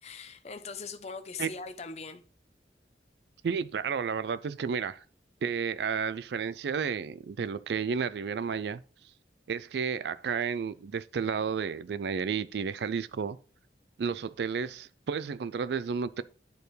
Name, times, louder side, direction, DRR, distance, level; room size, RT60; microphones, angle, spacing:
voice 1, 0.0-2.2, left 5 dB, 35° left, 0.7 m, -41 dB
voice 2, 3.4-5.0 5.4-8.8 9.5-13.4 14.0-16.2, right 6 dB, 70° right, 0.4 m, -32 dB
10.5 x 4.5 x 3.2 m
head